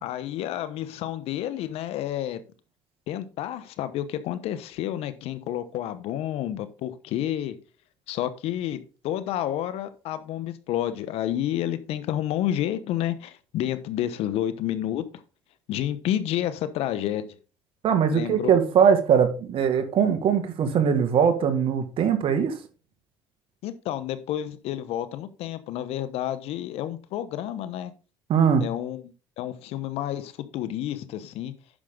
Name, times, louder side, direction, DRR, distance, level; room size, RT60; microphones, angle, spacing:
voice 1, 0.0-2.4 3.1-7.6 8.1-15.0 15.7-17.2 18.1-18.5 23.6-27.9 28.6-31.5, left 12 dB, 70° left, 1.1 m, -30 dB
voice 2, 17.8-22.6 28.3-28.6, right 7 dB, 55° right, 2.0 m, -21 dB
10.0 x 6.6 x 3.8 m
supercardioid pair, 90°, 11 cm